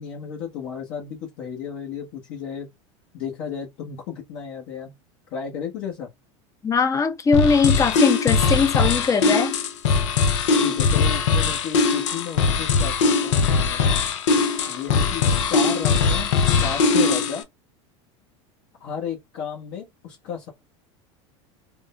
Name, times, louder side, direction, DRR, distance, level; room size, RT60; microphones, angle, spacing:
voice 1, 0.0-2.7 3.1-5.0 5.3-6.1 10.5-14.0 14.7-17.5 18.8-20.5, left 7 dB, 60° left, 1.0 m, -33 dB
voice 2, 6.6-9.5, left 5 dB, 20° left, 0.6 m, -20 dB
sound 1, 7.3-17.4, left 4 dB, 85° left, 0.7 m, -20 dB
3.6 x 2.1 x 2.3 m
supercardioid pair, 105°, 15 cm